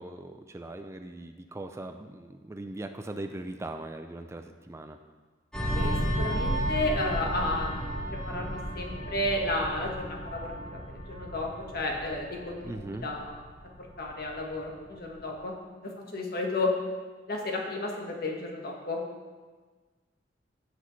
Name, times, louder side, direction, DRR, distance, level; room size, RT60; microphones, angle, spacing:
voice 1, 0.0-5.0 12.6-13.1, right 2 dB, 15° right, 7 dB, 0.4 m, -40 dB
sound 1, 5.5-14.6 14.9-15.2, equal, 5° left, 1.4 m, -33 dB
voice 2, 5.7-13.4 14.0-15.5 15.8-16.7 17.3-19.0, left 2 dB, 55° left, 0 dB, 1.5 m, -33 dB
15.5 x 6.0 x 3.2 m, 1.4 s
head